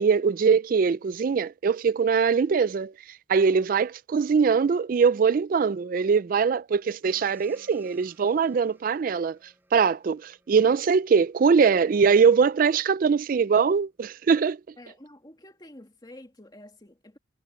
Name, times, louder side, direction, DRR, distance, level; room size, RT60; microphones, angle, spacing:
voice 1, 0.0-2.9 3.3-9.4 9.7-14.6, right 5 dB, 45° right, 0.3 m, -22 dB
Gong, 7.0-12.1, right 1 dB, 10° right, 6.9 m, -61 dB
voice 2, 14.8-17.2, left 1 dB, 20° left, 2.2 m, -48 dB
head